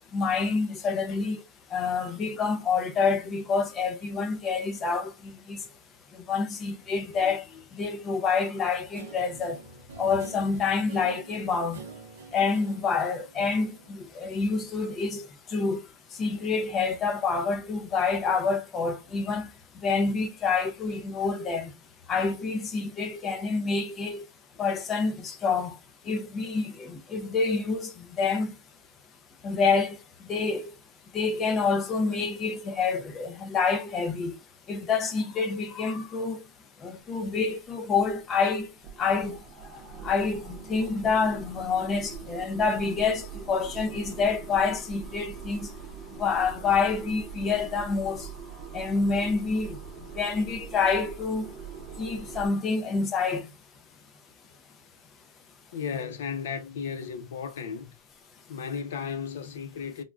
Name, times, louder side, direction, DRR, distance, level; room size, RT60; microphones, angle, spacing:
voice 1, 0.1-1.4 1.7-5.6 6.3-7.4 7.8-9.6 10.0-11.8 12.3-15.3 15.5-15.8 16.2-19.5 19.8-21.7 22.1-24.2 24.6-25.7 26.1-28.5 29.4-30.0 30.3-30.7 31.1-34.3 34.7-36.4 36.8-38.7 39.0-39.4 40.0-45.7 46.2-48.3 48.7-49.8 50.2-51.5 52.0-53.5, left 4 dB, 20° left, 0.5 m, -27 dB
Guitar, 8.9-14.8, right 4 dB, 85° right, 0.7 m, -47 dB
sound 1, 37.6-37.7 38.0-38.2 38.6-52.5, right 5 dB, 25° right, 0.7 m, -42 dB
voice 2, 55.7-57.9 58.5-60.0, left 6 dB, 75° left, 0.6 m, -34 dB
3.6 x 2.2 x 2.4 m
supercardioid pair, 160°, 0 cm